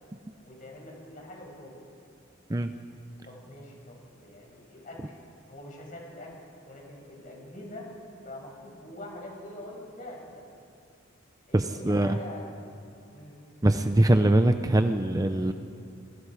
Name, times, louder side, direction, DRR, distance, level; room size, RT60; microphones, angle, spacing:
voice 1, 0.4-1.8 3.2-5.2 5.5-6.3 6.6-7.9 8.2-10.4 11.5-12.5 13.1-13.4, left 1 dB, 45° left, -2 dB, 6.4 m, -44 dB
voice 2, 11.5-12.2 13.6-15.5, right 1 dB, 20° right, 8 dB, 0.6 m, -22 dB
26.5 x 21.5 x 5.0 m, 2.4 s
head